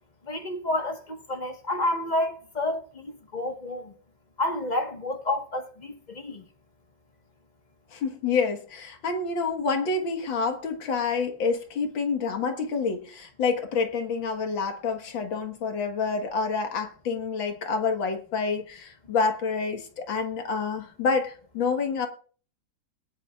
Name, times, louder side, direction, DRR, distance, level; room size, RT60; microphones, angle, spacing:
voice 1, 0.2-3.9 4.4-6.4, left 1 dB, 25° left, 1.3 m, -30 dB
voice 2, 7.9-22.1, left 4 dB, 85° left, 2.3 m, -28 dB
20.5 x 10.5 x 2.4 m
omnidirectional pair, 2.0 m